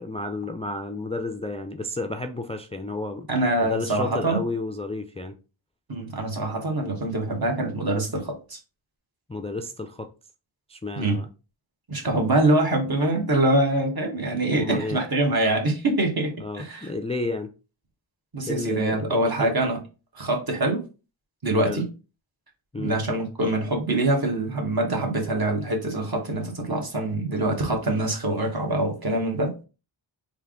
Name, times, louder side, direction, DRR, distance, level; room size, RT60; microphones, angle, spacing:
voice 1, 0.0-3.3 3.6-5.3 9.3-10.1 10.7-11.3 14.5-15.0 16.4-17.5 18.5-19.6 21.6-21.8 22.7-23.0, left 2 dB, 15° left, 0.3 m, -31 dB
voice 2, 3.3-4.4 5.9-8.6 11.0-11.2 11.9-16.9 18.3-19.8 20.1-20.8 21.4-21.9 22.8-29.5, right 2 dB, 45° right, 1.2 m, -24 dB
3.4 x 2.5 x 3.6 m
wide cardioid pair, 60°, 49 cm